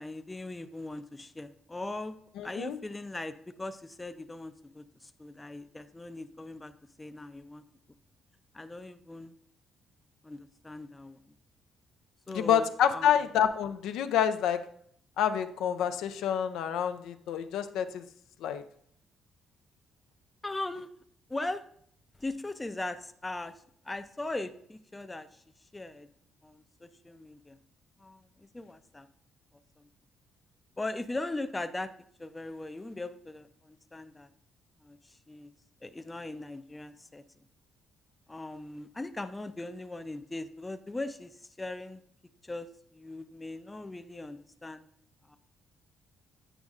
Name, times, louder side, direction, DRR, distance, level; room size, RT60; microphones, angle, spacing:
voice 1, 0.0-2.1 2.4-6.7 7.0-7.6 8.5-9.4 10.2-11.2 12.3-13.3 20.4-20.9 21.3-21.6 22.2-23.5 23.8-25.4 25.7-26.1 26.4-27.6 28.0-29.1 29.8-29.9 30.8-31.9 32.2-34.3 34.8-35.0 35.3-35.5 35.8-37.2 38.3-42.0 42.4-42.7 42.9-44.8 45.3-45.4, left 2 dB, 15° left, 10 dB, 0.4 m, -39 dB
voice 2, 2.4-2.8 12.3-14.6 15.2-18.0 18.4-18.6, left 9 dB, 85° left, 7 dB, 0.4 m, -28 dB
8.9 x 5.1 x 2.4 m, 0.65 s
cardioid pair, 90°, 0 cm